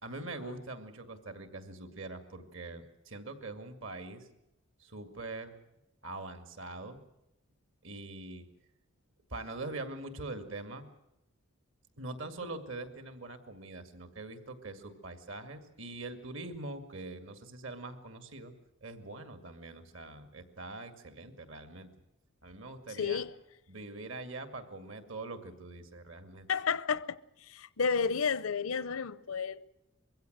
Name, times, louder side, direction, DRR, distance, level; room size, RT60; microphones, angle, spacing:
voice 1, 0.0-4.3 4.8-5.5 6.0-7.0 7.8-8.5 9.3-10.9 12.0-18.5 18.8-21.9 22.4-23.2 23.7-26.5, right 2 dB, 60° right, 2.3 m, -43 dB
voice 2, 23.0-23.3 26.5-29.6, left 6 dB, 75° left, 0.7 m, -32 dB
22.5 x 16.0 x 9.2 m
head